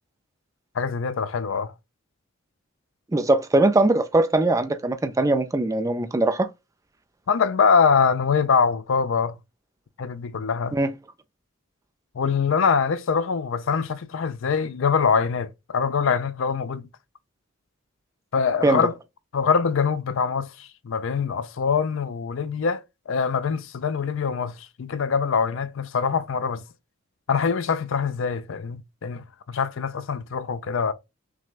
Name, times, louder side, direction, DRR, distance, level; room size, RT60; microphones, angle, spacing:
voice 1, 0.7-1.7 7.3-9.4 10.0-10.8 12.1-16.9 18.3-18.9 19.3-26.6 27.3-30.9, left 5 dB, 60° left, 0.4 m, -24 dB
voice 2, 3.1-6.5 10.7-10.9 18.6-18.8, right 2 dB, 15° right, 0.4 m, -21 dB
5.9 x 2.2 x 2.4 m
head